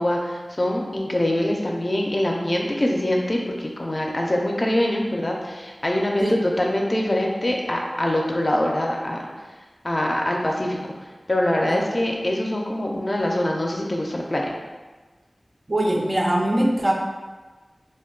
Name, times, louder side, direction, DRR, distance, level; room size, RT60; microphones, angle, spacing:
voice 1, 0.0-9.3 9.8-10.8 11.3-14.5, left 1 dB, 40° left, 0 dB, 0.4 m, -24 dB
voice 2, 15.7-16.9, right 1 dB, 50° right, -1 dB, 0.4 m, -21 dB
2.2 x 2.1 x 3.7 m, 1.3 s
wide cardioid pair, 45°, 0 cm